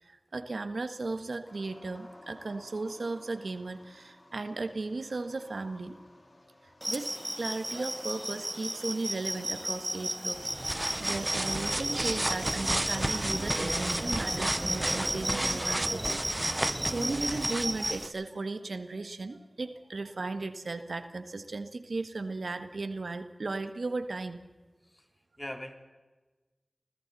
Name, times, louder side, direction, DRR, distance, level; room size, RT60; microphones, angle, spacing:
voice 1, 0.0-5.9 6.9-10.4 10.7-24.4, right 3 dB, 80° right, 9 dB, 1.5 m, -36 dB
sound 1, 1.4-12.5, left 1 dB, 40° left, 3.4 m, -57 dB
sound 2, 6.8-18.1, equal, 5° right, 1.4 m, -34 dB
sound 3, 10.3-18.1, right 1 dB, 30° right, 0.9 m, -32 dB
voice 2, 25.4-25.7, left 1 dB, 20° left, 4 dB, 3.3 m, -41 dB
29.5 x 21.0 x 4.2 m, 1.2 s
wide cardioid pair, 45°, 0 cm